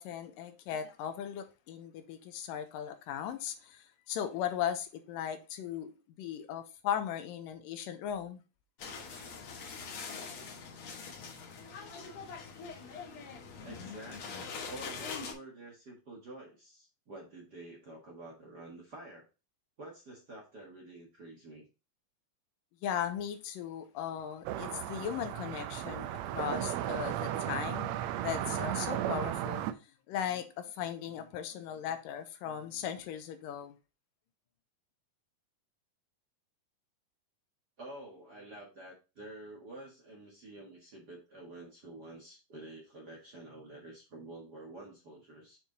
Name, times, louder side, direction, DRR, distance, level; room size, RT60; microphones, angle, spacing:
voice 1, 0.0-5.9 6.2-8.4 22.8-29.7 30.1-33.7, left 9 dB, 85° left, 2.5 m, -37 dB
sound 1, 8.8-15.3, left 5 dB, 60° left, 2.5 m, -43 dB
voice 2, 13.6-19.3 19.8-21.6 37.8-45.6, right 2 dB, 40° right, 1.5 m, -49 dB
sound 2, 24.4-29.7, right 12 dB, 90° right, 1.5 m, -35 dB
7.1 x 4.6 x 3.9 m
omnidirectional pair, 3.9 m